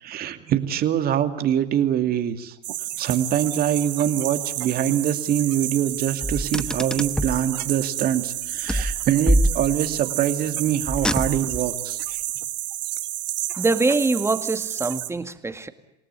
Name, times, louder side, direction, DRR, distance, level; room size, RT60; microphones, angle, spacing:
voice 1, 0.0-2.6 3.0-12.2, right 10 dB, 45° right, 8 dB, 2.5 m, -24 dB
sound 1, 2.6-15.1, right 14 dB, 80° right, 1.4 m, -31 dB
Car, 6.2-7.5 8.7-10.0 10.9-11.7, equal, 5° left, 1.1 m, -24 dB
voice 2, 13.5-15.7, right 3 dB, 10° right, 9 dB, 2.0 m, -23 dB
28.0 x 18.0 x 9.7 m, 0.90 s
hypercardioid pair, 90°, 21 cm